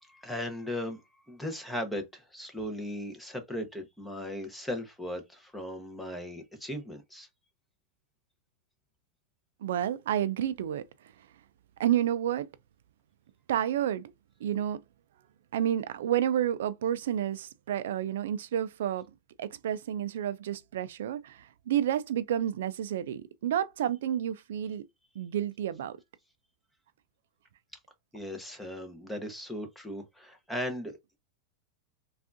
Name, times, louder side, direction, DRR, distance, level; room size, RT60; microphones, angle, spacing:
voice 1, 0.0-1.0 1.3-7.3 28.1-31.0, left 1 dB, 5° left, 0.7 m, -37 dB
voice 2, 9.6-10.8 11.8-12.5 13.5-14.1 14.4-14.8 15.5-19.0 19.4-24.8 25.2-26.0, right 10 dB, 75° right, 0.3 m, -30 dB
3.5 x 2.3 x 2.5 m
supercardioid pair, 140°, 0 cm